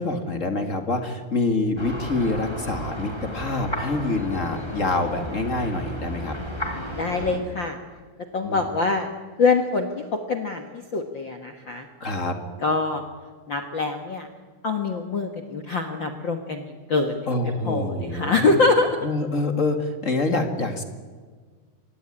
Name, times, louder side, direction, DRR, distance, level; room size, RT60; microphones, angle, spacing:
voice 1, 0.0-6.3 8.4-8.6 12.0-12.3 17.3-18.5 19.0-20.8, left 2 dB, 35° left, 6 dB, 1.3 m, -26 dB
sound 1, 1.8-7.4, equal, 5° left, 3.8 m, -33 dB
voice 2, 6.9-7.8 8.3-9.1 9.4-11.9 12.6-13.0 13.5-14.3 14.6-17.3 17.6-19.0, left 3 dB, 65° left, 5 dB, 1.2 m, -24 dB
25.0 x 19.0 x 10.0 m, 1.5 s
omnidirectional pair, 4.4 m